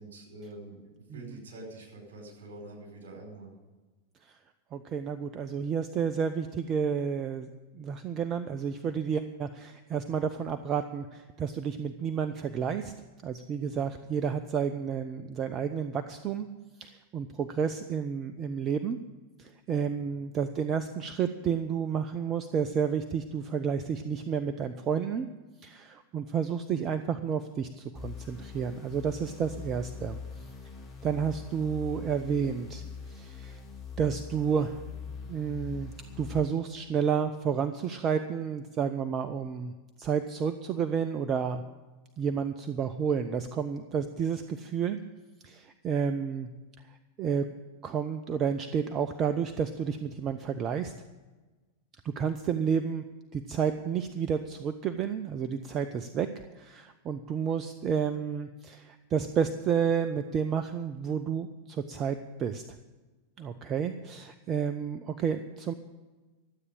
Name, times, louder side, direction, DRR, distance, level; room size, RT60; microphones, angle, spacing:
voice 1, 0.0-3.5 13.7-13.9 20.1-20.2 63.8-63.9, right 2 dB, 60° right, 0 dB, 4.9 m, -46 dB
voice 2, 4.7-12.9 13.2-16.5 16.8-19.0 19.4-25.3 25.6-30.5 31.0-33.6 34.0-34.8 35.3-39.7 40.0-41.6 42.2-45.0 45.4-46.5 47.2-47.5 47.8-50.9 52.0-53.0 53.3-56.3 56.5-62.6 63.4-65.7, right 7 dB, 30° right, 10 dB, 0.6 m, -31 dB
sound 1, 27.9-36.4, left 6 dB, 15° left, 4.0 m, -43 dB
12.5 x 8.3 x 8.8 m, 1.2 s
figure-of-eight pair, 90°, 0 cm